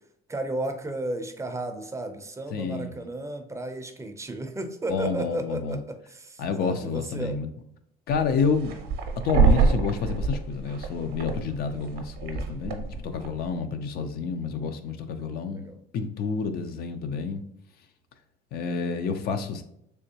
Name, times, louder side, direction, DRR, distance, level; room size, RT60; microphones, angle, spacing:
voice 1, 0.3-7.4 15.5-15.8, right 2 dB, 15° right, 6 dB, 0.5 m, -33 dB
voice 2, 2.5-2.9 4.9-5.8 6.4-7.5 8.1-8.8 9.2-15.6 15.9-17.4 18.5-19.6, left 5 dB, 65° left, 8 dB, 0.5 m, -29 dB
sound 1, 8.1-13.5, right 5 dB, 70° right, 0.6 m, -26 dB
3.4 x 3.0 x 2.7 m, 0.75 s
cardioid pair, 110°, 17 cm